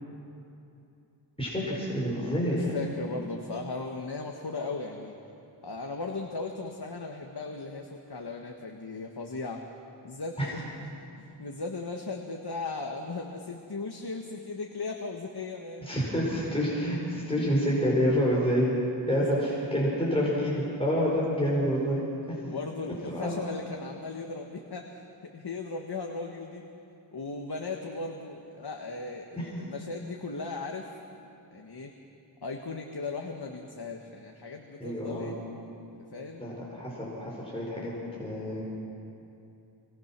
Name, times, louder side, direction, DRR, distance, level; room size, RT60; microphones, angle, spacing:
voice 1, 1.4-2.8 10.4-10.5 15.8-18.7 19.1-22.0 23.1-23.3 29.4-29.5 34.8-35.3 36.4-37.9 38.2-38.6, equal, 15° left, -5 dB, 5.5 m, -28 dB
voice 2, 2.1-5.1 5.6-9.6 10.0-10.6 11.2-16.0 17.4-17.5 19.1-19.8 22.5-26.6 27.1-30.9 31.5-31.9 32.4-35.3 36.1-36.6, left 3 dB, 60° left, 2 dB, 1.7 m, -37 dB
26.0 x 21.5 x 6.1 m, 2.7 s
wide cardioid pair, 60°, 44 cm